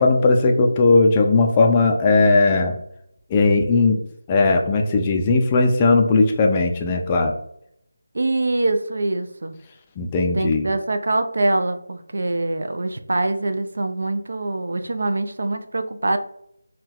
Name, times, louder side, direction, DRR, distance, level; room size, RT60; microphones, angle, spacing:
voice 1, 0.0-2.8 3.3-4.0 4.3-7.3 10.0-10.7, left 3 dB, 20° left, 3 dB, 0.3 m, -17 dB
voice 2, 8.1-9.6 10.3-16.2, right 2 dB, 65° right, 8 dB, 0.3 m, -24 dB
3.9 x 2.2 x 2.3 m, 0.73 s
figure-of-eight pair, 165°, 0 cm